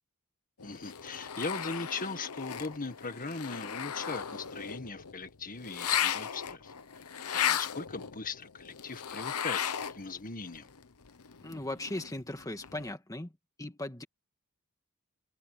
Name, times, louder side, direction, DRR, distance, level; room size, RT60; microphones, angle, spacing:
sound 1, 0.6-10.2 10.5-12.9, left 9 dB, 80° left, 1.0 m, -36 dB
voice 1, 0.6-6.7 7.3-9.6 9.9-10.7, left 4 dB, 40° left, 1.8 m, -39 dB
voice 2, 11.4-13.3 13.6-14.0, left 1 dB, 15° left, 1.7 m, -38 dB
head